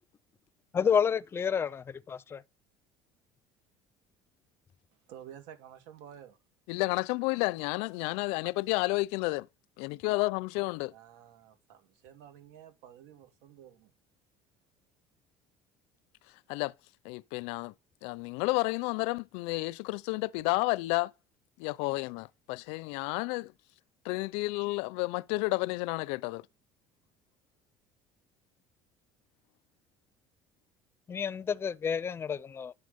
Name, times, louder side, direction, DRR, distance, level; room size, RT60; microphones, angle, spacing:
voice 1, 0.7-2.4 31.1-32.7, left 7 dB, 25° left, 0.6 m, -30 dB
voice 2, 4.9-6.4 10.9-13.9, right 10 dB, 90° right, 2.4 m, -51 dB
voice 3, 6.7-9.5 9.8-10.9 16.5-16.7 17.0-17.7 18.0-21.1 21.6-23.5 24.0-26.4, left 23 dB, 85° left, 0.5 m, -31 dB
11.0 x 7.5 x 5.2 m
cardioid pair, 145°, 10 cm